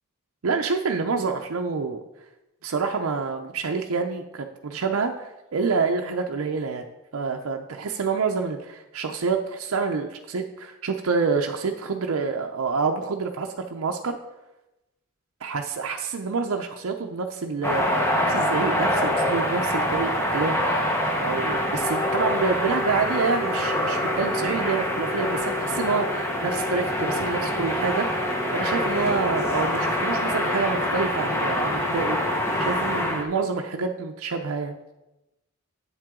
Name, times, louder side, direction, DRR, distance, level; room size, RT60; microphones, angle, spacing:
voice 1, 0.4-2.0 2.6-6.8 7.1-14.2 15.4-20.6 21.2-28.2 28.5-32.2 32.6-34.8, right 4 dB, 85° right, 3 dB, 0.6 m, -27 dB
sound 1, 17.6-33.2, left 1 dB, 10° left, 0.9 m, -25 dB
8.1 x 7.5 x 3.7 m, 0.96 s
head